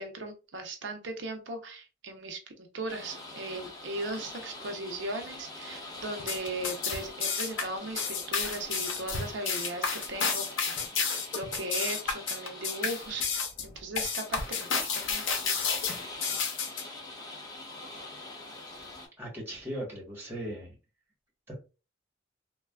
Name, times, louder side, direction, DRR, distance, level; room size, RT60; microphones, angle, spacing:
voice 1, 0.0-13.3 13.6-15.4, right 2 dB, 75° right, 4 dB, 0.7 m, -38 dB
sound 1, 2.9-19.1, left 2 dB, 20° left, 0.9 m, -44 dB
sound 2, 6.2-16.8, left 5 dB, 85° left, 0.7 m, -31 dB
voice 2, 19.2-20.7 21.5-21.6, right 1 dB, 10° right, -2 dB, 1.2 m, -38 dB
3.2 x 2.2 x 2.3 m, 0.31 s
head